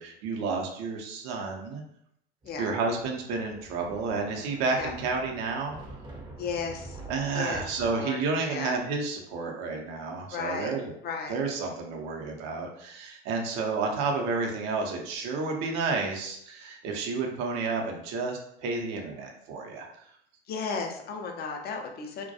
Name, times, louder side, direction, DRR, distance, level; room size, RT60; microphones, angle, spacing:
voice 1, 0.0-1.8 2.6-5.8 7.1-10.9 11.3-19.9, right 4 dB, 55° right, 1 dB, 0.7 m, -31 dB
Thunder, 2.4-7.9, right 2 dB, 15° right, 0.6 m, -46 dB
voice 2, 6.4-7.0 7.3-8.7 10.3-10.7 11.0-11.4 20.5-22.3, left 5 dB, 30° left, 3 dB, 0.5 m, -34 dB
2.2 x 2.2 x 2.7 m, 0.72 s
hypercardioid pair, 80°, 33 cm